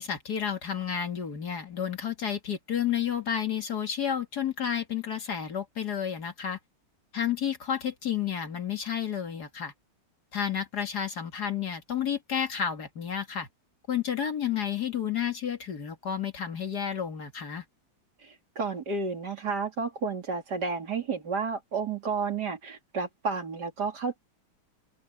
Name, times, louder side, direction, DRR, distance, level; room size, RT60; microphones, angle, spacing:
voice 1, 0.0-6.6 7.1-9.7 10.3-13.5 13.9-17.6, left 8 dB, 55° left, 2.5 m, -31 dB
voice 2, 18.2-24.2, right 4 dB, 55° right, 3.3 m, -31 dB
open air
omnidirectional pair, 2.1 m